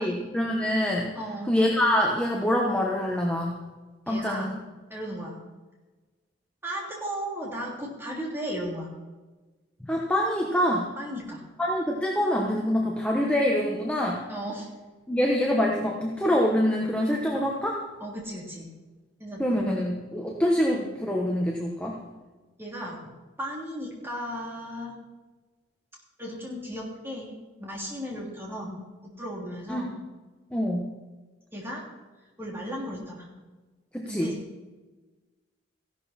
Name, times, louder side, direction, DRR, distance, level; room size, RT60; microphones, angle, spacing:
voice 1, 0.0-1.1 1.5-3.6 4.1-4.6 9.8-10.9 11.6-14.2 15.1-17.8 19.4-22.0 29.7-29.8 30.5-30.9 33.9-34.4, equal, 5° left, -2 dB, 1.2 m, -25 dB
voice 2, 1.1-1.5 4.1-4.5 4.9-5.4 6.6-8.9 11.0-11.4 14.3-14.7 18.0-18.7 19.2-19.6 22.6-23.0 23.4-24.9 26.2-27.3 27.6-28.8 29.2-29.9 31.5-31.8 32.4-33.3 34.0-34.4, equal, 10° right, -3 dB, 3.0 m, -35 dB
15.0 x 11.5 x 4.3 m, 1.2 s
head